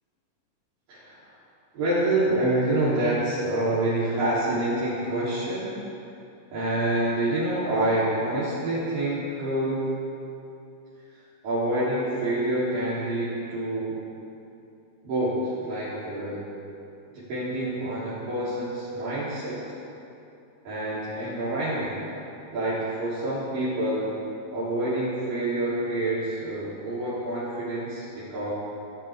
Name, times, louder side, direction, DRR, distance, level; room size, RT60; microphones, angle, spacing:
voice 1, 0.9-1.2 1.7-5.8 6.5-10.0 11.1-14.0 15.0-16.4 17.1-19.6 20.7-22.1 22.5-24.2 24.5-28.5, right 1 dB, 80° right, -12 dB, 5.3 m, -27 dB
26.0 x 15.0 x 3.7 m, 2.7 s
omnidirectional pair, 3.8 m